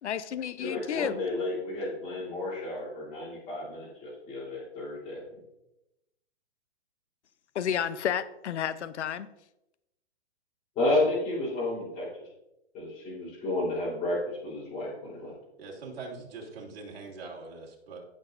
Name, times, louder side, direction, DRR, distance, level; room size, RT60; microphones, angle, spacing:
voice 1, 0.0-1.2 7.5-9.3, left 9 dB, 90° left, 15 dB, 0.8 m, -31 dB
voice 2, 0.6-5.2 10.8-12.1 12.7-15.3, left 2 dB, 20° left, -8 dB, 3.9 m, -31 dB
voice 3, 15.6-18.0, right 4 dB, 60° right, -1 dB, 3.1 m, -42 dB
16.0 x 6.3 x 2.6 m, 0.90 s
hypercardioid pair, 160°, 33 cm